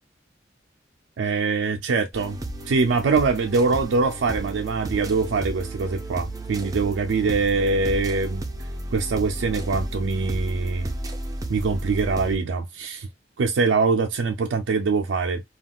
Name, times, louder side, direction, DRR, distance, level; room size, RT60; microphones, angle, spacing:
voice 1, 1.2-2.4 2.7-10.9 11.5-13.1 13.4-15.4, right 4 dB, 90° right, 0.4 m, -23 dB
sound 1, 2.1-12.4, right 1 dB, 20° right, 0.5 m, -33 dB
3.5 x 2.3 x 2.2 m
head